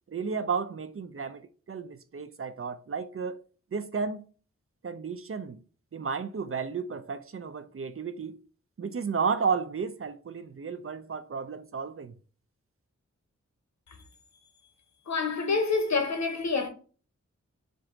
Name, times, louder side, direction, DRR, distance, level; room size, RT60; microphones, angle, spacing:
voice 1, 0.1-3.4 3.7-4.2 4.8-5.6 5.9-8.4 8.8-12.1, right 5 dB, 45° right, 0.5 m, -33 dB
voice 2, 15.1-16.7, left 4 dB, 65° left, 1.0 m, -27 dB
4.5 x 2.6 x 3.8 m
cardioid pair, 50°, 30 cm